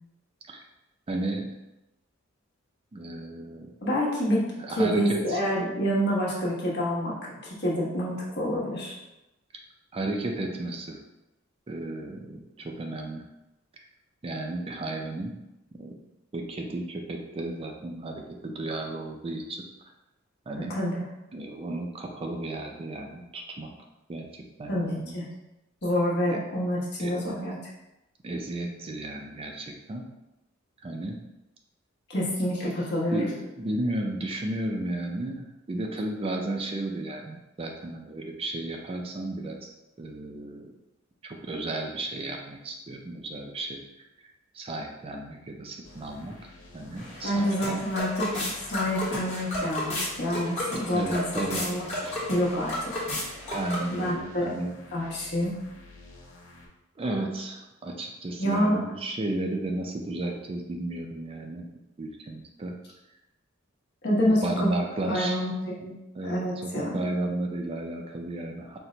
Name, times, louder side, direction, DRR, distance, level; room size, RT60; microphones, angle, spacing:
voice 1, 1.1-1.6 2.9-3.7 4.5-5.4 9.9-11.0 11.7-13.2 14.2-15.3 15.8-16.0 16.3-19.6 20.5-20.8 21.3-23.7 24.1-25.1 26.3-26.4 27.0-27.1 28.2-30.0 30.8-31.2 33.1-39.7 40.0-40.7 41.2-43.8 44.2-46.4 46.7-47.8 50.9-51.7 52.0-52.2 53.5-54.7 57.0-61.7 62.0-62.7 64.2-65.5 66.1-68.8, right 2 dB, 25° right, 2 dB, 0.4 m, -33 dB
voice 2, 3.8-4.4 4.8-9.0 20.7-21.1 24.7-25.2 25.8-27.6 32.1-33.3 47.2-49.9 50.2-51.2 51.5-52.9 53.9-54.5 54.9-55.5 58.4-58.8 64.0-64.7 65.1-65.5 65.8-66.0 66.2-67.0, equal, 55° left, -5 dB, 1.1 m, -27 dB
sound 1, 45.8-56.7, left 2 dB, 80° left, 0.7 m, -50 dB
sound 2, 47.0-54.1, left 1 dB, 35° left, 1.2 m, -33 dB
4.3 x 2.2 x 3.8 m, 0.94 s
head